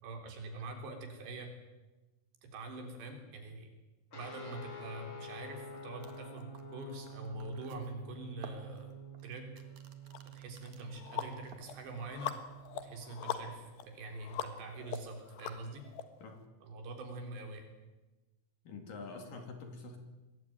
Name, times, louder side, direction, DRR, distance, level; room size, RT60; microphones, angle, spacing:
voice 1, 0.0-1.5 2.4-3.7 4.1-9.0 9.2-9.5 10.3-12.4 12.8-15.9 16.6-17.7, right 2 dB, 70° right, 4 dB, 5.7 m, -44 dB
sound 1, 4.1-13.1, right 2 dB, 25° left, 4.9 m, -49 dB
sound 2, 6.0-10.9 11.3-12.1 12.4-12.7, right 7 dB, 50° right, 2.5 m, -55 dB
sound 3, 10.1-10.2 10.7-16.0, left 10 dB, 70° left, 3.5 m, -42 dB
voice 2, 18.6-20.0, left 3 dB, 55° left, 5 dB, 3.8 m, -46 dB
24.5 x 19.5 x 9.3 m, 1.1 s
omnidirectional pair, 5.3 m